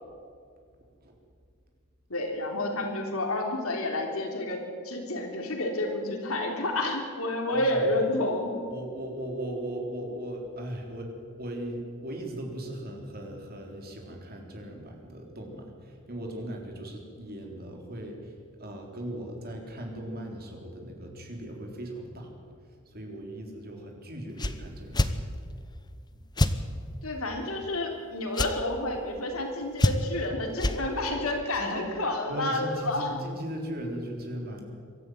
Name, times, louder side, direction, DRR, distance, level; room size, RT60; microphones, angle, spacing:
voice 1, 2.1-4.6 4.8-8.6 27.0-33.2, left 1 dB, 80° left, 2 dB, 3.5 m, -30 dB
voice 2, 7.5-7.8 8.7-11.1 11.4-22.3 22.7-25.1 31.5-31.9 32.3-34.7, right 1 dB, 45° right, 2 dB, 3.7 m, -38 dB
sound 1, 24.4-24.5 24.9-25.1 26.4-26.5 28.3-28.5 29.8-30.2 30.6-30.8, left 1 dB, 20° left, 0.9 m, -24 dB
23.5 x 13.0 x 9.3 m, 2.2 s
head